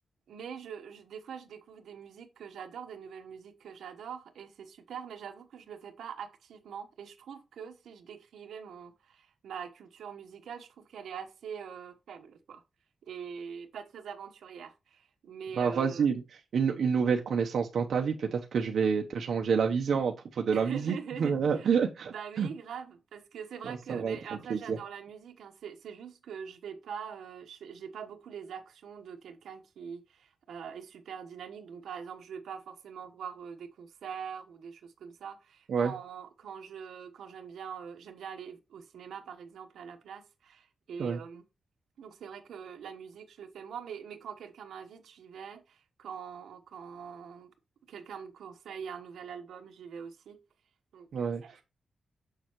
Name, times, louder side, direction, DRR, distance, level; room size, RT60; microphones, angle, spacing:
voice 1, 0.3-12.6 13.0-16.1 20.5-21.8 22.1-41.4 42.0-47.5 47.9-50.4 50.9-51.6, right 7 dB, 90° right, 1.2 m, -44 dB
voice 2, 15.6-16.2 16.5-22.5 23.6-24.2 24.5-24.8 35.7-35.9 41.0-41.2 51.1-51.4, right 6 dB, 70° right, 0.9 m, -28 dB
6.9 x 6.7 x 3.0 m
wide cardioid pair, 135°, 0 cm